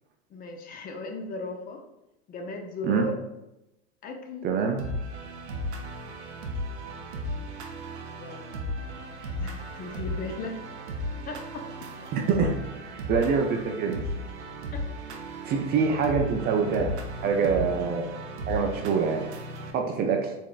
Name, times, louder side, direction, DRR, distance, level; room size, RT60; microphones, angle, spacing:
voice 1, 0.3-1.8 2.3-3.1 4.0-4.5 6.5-6.6 8.0-8.8 9.4-10.6 11.3-11.7 14.7-14.9, left 2 dB, 25° left, 4 dB, 0.5 m, -37 dB
voice 2, 4.4-4.8 12.1-12.6 12.8-14.0 15.5-18.1 18.5-19.3 19.7-20.3, right 5 dB, 30° right, 3 dB, 0.4 m, -25 dB
sound 1, 4.8-19.7, equal, 80° right, 0.7 m, -36 dB
4.0 x 3.5 x 2.3 m, 0.93 s
hypercardioid pair, 100°, 33 cm